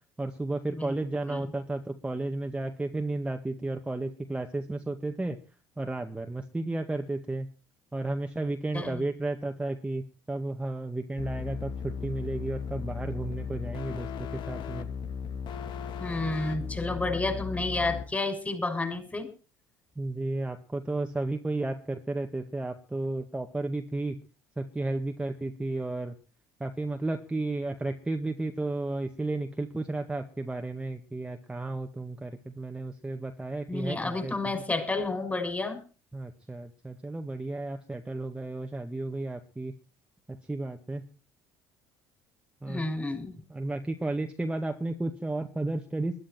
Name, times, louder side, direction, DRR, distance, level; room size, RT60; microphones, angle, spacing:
voice 1, 0.2-5.4 5.8-7.5 7.9-14.9 20.0-24.2 24.6-26.1 26.6-34.6 36.1-39.7 40.5-41.0 42.6-42.8 43.5-46.2, right 2 dB, 10° right, 4 dB, 2.0 m, -33 dB
sound 1, 11.2-18.0, left 6 dB, 55° left, 2.2 m, -36 dB
voice 2, 16.0-19.3 33.7-35.8 42.7-43.4, left 2 dB, 15° left, 7 dB, 6.2 m, -31 dB
21.0 x 11.5 x 4.5 m, 0.36 s
hypercardioid pair, 65°, 9 cm